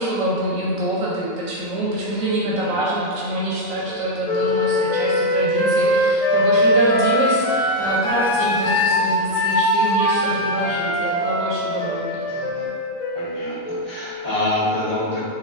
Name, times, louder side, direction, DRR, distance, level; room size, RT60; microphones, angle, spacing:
voice 1, 0.0-12.4, right 1 dB, 85° right, -6 dB, 1.0 m, -25 dB
sound 1, 3.0-12.7, right 3 dB, 45° left, 0.8 m, -38 dB
Wind instrument woodwind instrument, 4.2-14.1, left 1 dB, 85° left, 1.0 m, -21 dB
voice 2, 13.1-15.2, left 2 dB, 35° right, -13 dB, 1.7 m, -25 dB
4.2 x 2.4 x 2.5 m, 2.2 s
omnidirectional pair, 1.4 m